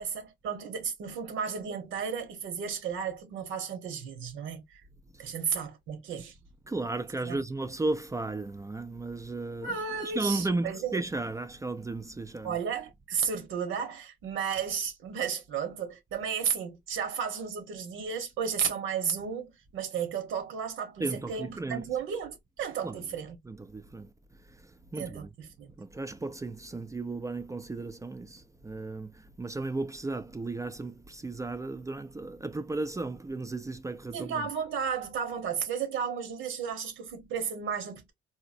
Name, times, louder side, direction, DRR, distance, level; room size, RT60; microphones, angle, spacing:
voice 1, 0.0-4.8 5.2-6.3 7.2-7.4 9.6-11.0 12.4-23.3 25.0-25.7 34.1-38.1, right 7 dB, 85° right, 1.1 m, -33 dB
voice 2, 6.7-12.6 21.0-21.9 22.8-23.0 23.4-24.1 24.4-25.3 25.8-34.5, right 2 dB, 15° right, 0.4 m, -35 dB
3.8 x 2.1 x 2.6 m
cardioid pair, 90°, 20 cm